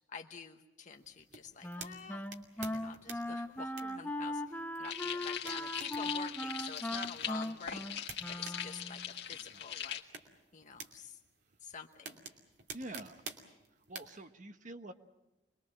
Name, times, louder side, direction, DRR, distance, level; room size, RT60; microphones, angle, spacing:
voice 1, 0.1-2.2 2.6-4.4 4.8-7.8 8.3-10.0 10.5-11.2 11.6-12.2 12.9-13.0, left 5 dB, 45° left, 4 dB, 1.0 m, -48 dB
sound 1, 0.9-14.2, right 5 dB, 70° right, 2.6 m, -52 dB
Wind instrument woodwind instrument, 1.6-9.1, left 1 dB, 10° left, 0.9 m, -39 dB
sound 2, 4.8-10.0, left 9 dB, 65° left, 1.8 m, -41 dB
voice 2, 12.7-13.2 13.9-14.9, right 1 dB, 45° right, 9 dB, 1.3 m, -46 dB
25.5 x 22.0 x 7.5 m, 1.0 s
head